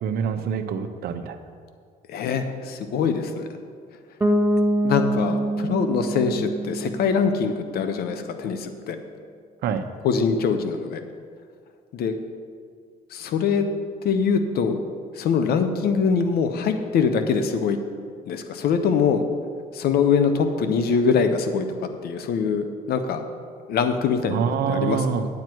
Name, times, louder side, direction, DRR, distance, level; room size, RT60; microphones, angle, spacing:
voice 1, 0.0-1.4 9.6-9.8 24.3-25.3, right 7 dB, 65° right, 7 dB, 0.8 m, -25 dB
voice 2, 2.1-3.5 4.8-9.0 10.0-11.0 11.9-12.2 13.1-13.7 14.0-14.8 15.1-17.8 18.3-19.2 19.7-21.7 22.0-23.2 23.7-25.0, left 6 dB, 65° left, 8 dB, 0.9 m, -23 dB
Bass guitar, 4.2-8.1, right 1 dB, 10° right, 0.9 m, -25 dB
9.7 x 9.1 x 4.6 m, 2.1 s
cardioid pair, 110°, 17 cm